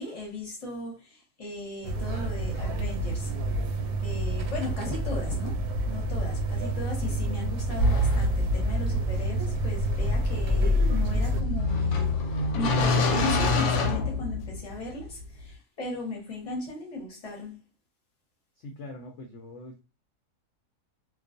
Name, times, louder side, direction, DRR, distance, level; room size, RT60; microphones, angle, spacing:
voice 1, 0.0-3.3 4.0-5.6 5.8-17.6, left 2 dB, 30° left, 0.8 m, -37 dB
sound 1, 1.8-11.4, right 2 dB, 80° right, 1.1 m, -29 dB
sound 2, 7.8-14.7, left 2 dB, 80° left, 1.1 m, -26 dB
voice 2, 18.6-19.8, left 2 dB, 65° left, 0.7 m, -43 dB
2.3 x 2.3 x 2.5 m
omnidirectional pair, 1.6 m